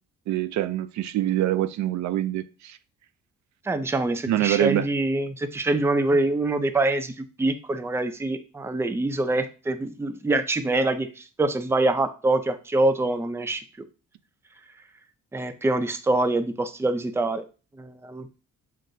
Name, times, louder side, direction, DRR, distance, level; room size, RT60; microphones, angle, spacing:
voice 1, 0.3-2.8 4.3-4.9, right 13 dB, 70° right, 0.4 m, -25 dB
voice 2, 3.6-13.6 15.3-17.4 17.8-18.3, right 2 dB, 10° right, 0.4 m, -25 dB
7.5 x 2.6 x 2.6 m
cardioid pair, 90°, 30 cm